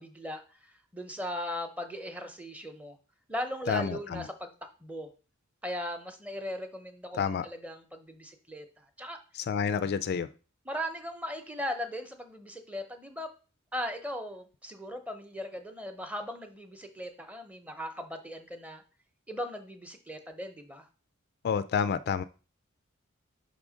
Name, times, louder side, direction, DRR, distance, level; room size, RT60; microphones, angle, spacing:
voice 1, 0.0-3.0 3.3-4.5 4.8-5.1 5.6-9.2 10.6-13.3 13.7-18.8 19.3-20.9, equal, 5° right, 6 dB, 0.7 m, -38 dB
voice 2, 3.7-4.2 7.2-7.5 9.3-10.3 21.4-22.2, left 6 dB, 50° left, 14 dB, 0.3 m, -29 dB
5.7 x 3.7 x 5.0 m, 0.35 s
head